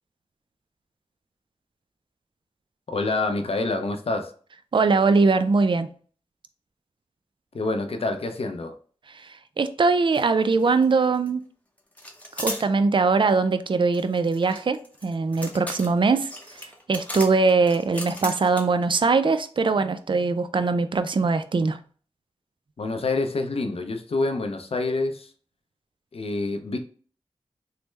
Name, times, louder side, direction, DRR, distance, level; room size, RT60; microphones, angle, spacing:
voice 1, 2.9-4.3 7.5-8.7 22.8-25.3 26.1-26.8, left 3 dB, 60° left, 0.5 m, -27 dB
voice 2, 4.7-5.9 9.1-9.3 9.6-11.4 12.4-16.3 16.9-21.8, right 4 dB, 45° right, 0.3 m, -21 dB
sound 1, 10.1-10.3 10.5-11.3 12.0-12.7 13.9-18.8, left 1 dB, 15° left, 0.7 m, -36 dB
3.2 x 2.1 x 3.1 m
cardioid pair, 45°, 11 cm